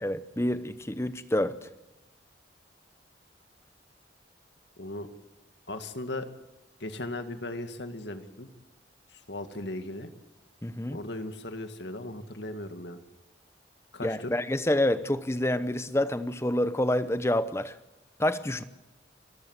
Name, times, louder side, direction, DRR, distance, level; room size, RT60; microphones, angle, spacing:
voice 1, 0.0-1.7 10.6-11.0 14.0-17.8 18.2-18.6, left 1 dB, 15° left, 13 dB, 0.8 m, -28 dB
voice 2, 4.8-5.1 5.7-6.3 6.8-8.5 9.1-10.1 10.9-13.0 13.9-14.3, left 1 dB, 70° left, 8 dB, 2.0 m, -37 dB
28.5 x 15.0 x 8.1 m, 1.0 s
head